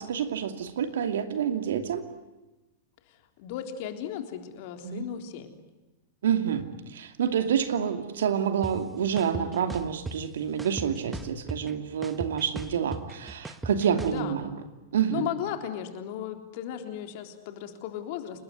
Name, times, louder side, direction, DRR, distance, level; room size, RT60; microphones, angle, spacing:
voice 1, 0.0-2.0 4.8-5.1 6.2-6.6 6.9-14.5 14.9-15.3, right 8 dB, 70° right, 7 dB, 2.6 m, -28 dB
voice 2, 3.4-5.6 14.1-14.4 15.1-18.4, left 10 dB, 55° left, 5 dB, 3.7 m, -35 dB
sound 1, 8.6-8.7 9.2-10.1 10.6-11.7 12.0-14.2, right 2 dB, 10° right, 1.6 m, -36 dB
30.0 x 20.0 x 9.6 m, 1.1 s
figure-of-eight pair, 100°, 0 cm